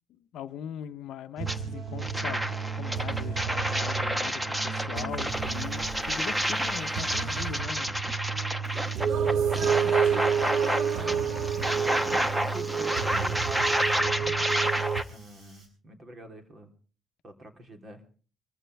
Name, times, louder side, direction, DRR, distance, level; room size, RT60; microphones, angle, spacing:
voice 1, 0.1-8.0, left 10 dB, 75° left, 0.8 m, -41 dB
sound 1, 1.4-15.0, right 7 dB, 75° right, 2.0 m, -30 dB
sound 2, 1.5-1.6 2.0-15.0, equal, 10° right, 1.1 m, -30 dB
Hiss, 5.3-15.7, right 1 dB, 50° right, 6.7 m, -54 dB
voice 2, 10.9-11.4 12.4-14.4 15.1-16.7 17.2-18.0, right 1 dB, 30° right, 3.3 m, -46 dB
24.5 x 14.5 x 3.4 m
cardioid pair, 120°, 0 cm